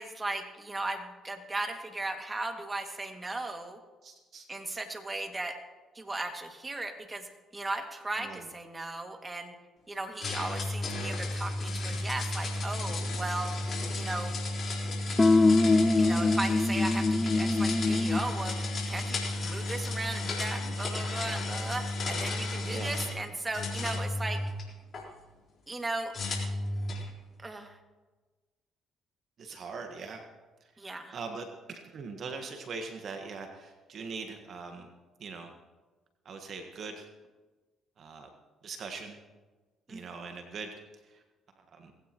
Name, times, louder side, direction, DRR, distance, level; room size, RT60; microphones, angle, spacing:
voice 1, 0.0-3.8 4.5-5.6 6.0-7.3 7.5-9.5 9.9-13.5 13.9-14.4 16.0-24.4 25.7-26.1 27.4-27.8 30.8-31.1 39.9-40.0, right 2 dB, 20° right, 4 dB, 2.3 m, -36 dB
voice 2, 4.0-4.5 8.2-8.4 22.7-22.9 29.4-30.2 31.1-34.9 35.2-35.5 36.2-37.0 38.0-38.3 38.6-39.2 39.9-40.7 41.0-41.2 41.7-41.9, right 4 dB, 55° right, 4 dB, 1.6 m, -41 dB
sound 1, 10.2-23.2 23.5-25.0 26.1-27.1, left 2 dB, 50° left, 4.1 m, -33 dB
sound 2, 15.2-18.3, left 3 dB, 20° left, 0.7 m, -23 dB
19.5 x 16.5 x 3.1 m, 1.3 s
hypercardioid pair, 55°, 0 cm